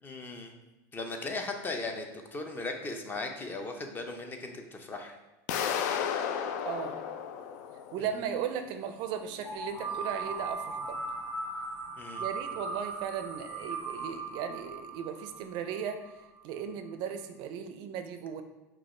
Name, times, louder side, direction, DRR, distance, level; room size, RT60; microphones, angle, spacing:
voice 1, 0.0-0.5 0.9-5.2 8.0-8.1 11.9-12.3, left 3 dB, 20° left, 4 dB, 0.6 m, -38 dB
sound 1, 5.5-8.3, left 8 dB, 70° left, 0.4 m, -33 dB
voice 2, 6.7-7.0 7.9-11.0 12.2-16.0 16.4-18.4, right 8 dB, 55° right, 8 dB, 0.4 m, -36 dB
sound 2, 9.4-16.2, right 3 dB, 40° left, 1.5 m, -38 dB
4.8 x 2.4 x 4.3 m, 1.1 s
supercardioid pair, 125°, 9 cm